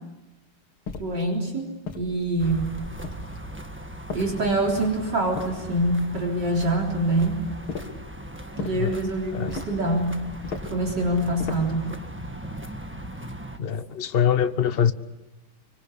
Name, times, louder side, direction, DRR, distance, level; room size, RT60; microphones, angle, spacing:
sound 1, 0.9-1.3 1.9-2.5 3.0-3.5 4.1-4.7 5.4-6.0 7.7-8.1 8.6-8.9 9.5-9.9 10.4-10.8 11.4-11.8, left 4 dB, 80° left, 2.8 m, -36 dB
voice 1, 1.0-1.7 2.0-2.8 4.1-7.5 8.6-10.2 10.7-12.0, right 1 dB, 55° right, 0 dB, 4.4 m, -25 dB
sound 2, 2.4-13.6, right 1 dB, 5° right, 1.3 m, -38 dB
voice 2, 13.6-14.9, left 8 dB, 40° left, 11 dB, 0.9 m, -23 dB
25.5 x 25.0 x 8.3 m, 1.0 s
omnidirectional pair, 2.2 m